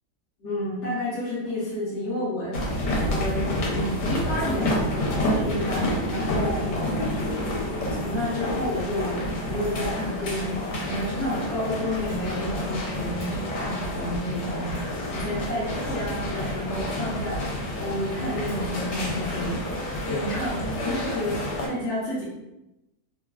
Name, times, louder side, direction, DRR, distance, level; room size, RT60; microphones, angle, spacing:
voice 1, 0.4-6.8 7.9-19.7 20.1-22.2, left 1 dB, 55° left, -10 dB, 0.9 m, -30 dB
sound 1, 2.5-21.7, left 1 dB, 75° left, 1.2 m, -29 dB
3.1 x 2.2 x 2.2 m, 0.93 s
omnidirectional pair, 1.8 m